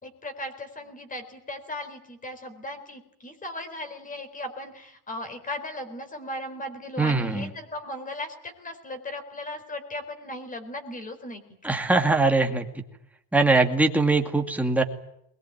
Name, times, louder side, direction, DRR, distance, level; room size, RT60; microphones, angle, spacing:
voice 1, 0.0-11.8, left 1 dB, 20° left, 9 dB, 4.4 m, -37 dB
voice 2, 7.0-7.5 11.6-12.7 13.3-14.8, right 3 dB, 5° right, 3 dB, 2.3 m, -22 dB
22.5 x 21.5 x 9.3 m, 0.77 s
cardioid pair, 165°, 39 cm